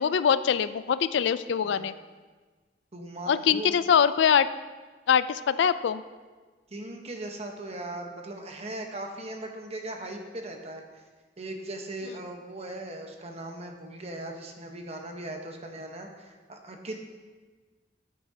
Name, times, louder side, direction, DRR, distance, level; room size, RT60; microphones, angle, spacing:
voice 1, 0.0-1.9 3.3-4.5 5.1-6.0, left 7 dB, 75° left, 14 dB, 0.4 m, -23 dB
voice 2, 1.6-2.0 2.9-3.8 6.7-10.8 11.4-17.0, right 1 dB, 35° right, 3 dB, 1.0 m, -39 dB
13.5 x 8.3 x 2.8 m, 1.4 s
head